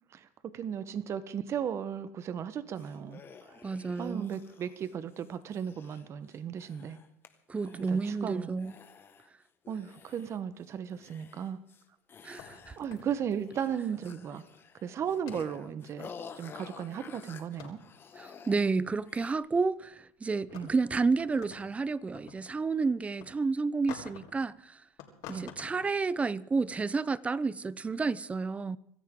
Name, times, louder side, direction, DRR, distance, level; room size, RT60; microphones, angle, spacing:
voice 1, 0.1-3.6 4.0-7.0 7.7-8.5 9.7-11.6 12.8-14.4 14.8-16.1 16.3-17.8 20.5-20.7 25.3-25.5, right 8 dB, 40° right, 1.1 m, -36 dB
sound 1, 2.8-7.3 7.6-8.2 8.6-9.3 9.7-10.6 10.9-11.8 12.1-13.1 13.4-18.7 19.1-19.3, left 6 dB, 30° left, 1.6 m, -51 dB
voice 2, 3.6-4.3 7.5-8.7 12.2-12.8 18.2-24.8 25.3-28.8, right 4 dB, 15° right, 0.6 m, -30 dB
sound 2, 12.4-13.9 15.0-15.6 17.1-17.2 17.5-18.0 19.7-19.9 20.3-21.7 22.0-22.5 23.0-23.2 23.9-24.4 25.0-25.9, left 9 dB, 65° left, 4.4 m, -48 dB
25.5 x 13.5 x 3.8 m
supercardioid pair, 105°, 7 cm